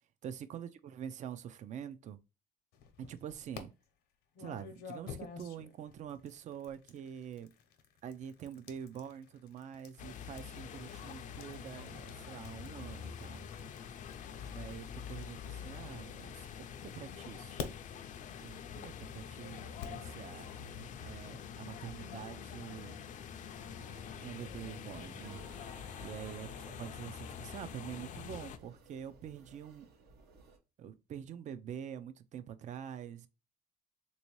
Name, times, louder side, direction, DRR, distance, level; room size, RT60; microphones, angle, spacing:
voice 1, 0.2-2.2 3.1-3.7 4.4-7.5 8.0-13.5 14.4-17.7 18.4-20.5 21.0-23.0 24.2-25.4 26.0-26.5 26.8-29.9 30.8-33.3, right 9 dB, 45° right, 0.4 m, -46 dB
sound 1, 2.7-3.6 4.3-16.4 17.0-20.1, left 6 dB, 80° left, 0.8 m, -50 dB
sound 2, 10.0-28.6, left 7 dB, 50° left, 0.4 m, -46 dB
sound 3, 16.5-30.6, right 3 dB, 70° right, 0.9 m, -60 dB
3.5 x 2.7 x 3.0 m
cardioid pair, 110°, 17 cm